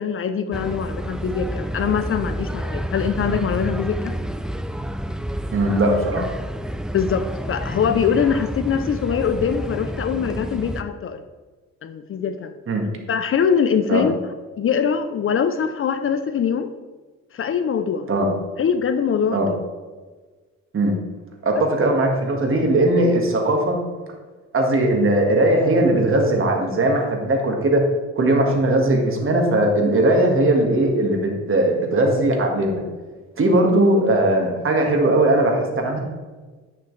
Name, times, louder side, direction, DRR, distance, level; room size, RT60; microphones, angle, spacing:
voice 1, 0.0-4.1 6.2-6.3 6.9-11.2 11.8-12.5 13.1-14.2 14.6-16.7 17.3-18.1 18.6-19.5 21.5-21.6, left 7 dB, 45° left, 10 dB, 0.6 m, -23 dB
sound 1, 0.5-10.8, equal, ahead, 0.3 m, -29 dB
voice 2, 5.5-6.3 12.7-12.8 13.9-14.0 18.1-18.3 19.3-19.5 20.7-20.9 21.4-23.8 24.5-27.8 28.2-32.7 33.4-36.0, right 1 dB, 45° right, 2 dB, 1.7 m, -19 dB
9.9 x 5.8 x 3.2 m, 1.3 s
cardioid pair, 90°, 30 cm